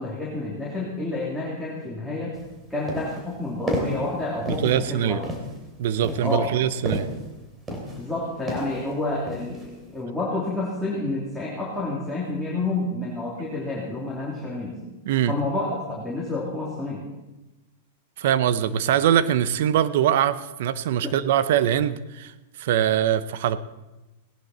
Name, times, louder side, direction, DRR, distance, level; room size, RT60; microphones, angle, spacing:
voice 1, 0.0-2.4 2.7-5.2 6.2-6.5 7.9-14.8 15.3-17.0 21.0-21.1, left 2 dB, ahead, -7 dB, 3.0 m, -29 dB
sound 1, 2.3-2.5 2.9-3.3 3.7-4.1 4.5-4.8 5.2-5.6 6.0-7.3 7.7-8.1 8.5-8.8 9.3-9.7, right 1 dB, 15° right, 2.9 m, -31 dB
voice 2, 4.4-5.2 5.8-7.1 15.1-15.3 18.2-22.3 22.6-23.6, right 10 dB, 65° right, 15 dB, 0.7 m, -22 dB
17.5 x 11.0 x 4.3 m, 1.1 s
hypercardioid pair, 130°, 0 cm